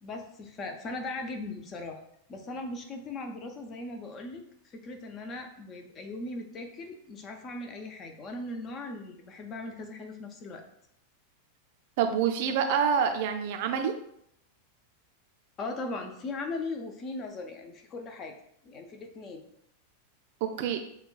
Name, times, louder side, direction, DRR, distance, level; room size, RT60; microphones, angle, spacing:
voice 1, 0.0-2.0 2.3-10.7 15.6-18.4 18.6-19.4, left 2 dB, 30° left, 4 dB, 0.6 m, -39 dB
voice 2, 12.0-13.9 20.4-20.8, right 7 dB, 50° right, 5 dB, 0.5 m, -27 dB
6.5 x 2.2 x 2.3 m, 0.72 s
figure-of-eight pair, 90°, 0 cm